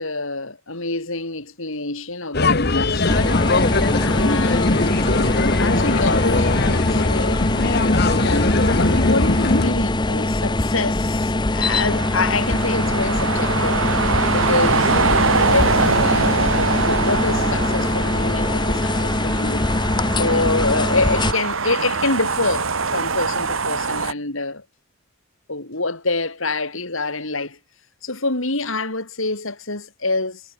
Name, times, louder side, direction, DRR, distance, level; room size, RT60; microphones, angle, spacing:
voice 1, 0.0-3.4 4.0-7.5 8.2-19.7 20.2-24.6 25.5-27.6 28.0-30.4, left 3 dB, 70° left, 4.0 m, -26 dB
sound 1, 2.3-9.7, left 2 dB, 50° left, 1.3 m, -20 dB
sound 2, 3.1-21.3, left 2 dB, 20° left, 0.9 m, -22 dB
sound 3, 11.7-24.1, right 4 dB, 70° right, 1.7 m, -23 dB
head